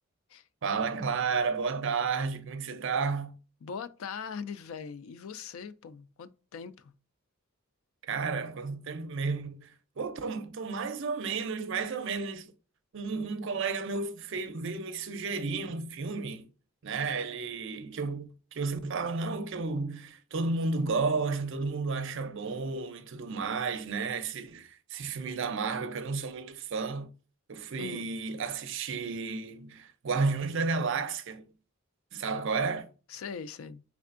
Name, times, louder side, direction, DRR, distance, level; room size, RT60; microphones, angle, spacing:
voice 1, 0.6-3.3 8.1-12.5 12.9-16.5 16.8-27.1 27.5-31.5 32.1-32.9, right 4 dB, 60° right, 0.5 m, -32 dB
voice 2, 3.6-6.9 27.8-28.1 33.1-33.8, left 6 dB, 70° left, 0.3 m, -41 dB
3.5 x 3.3 x 2.5 m
head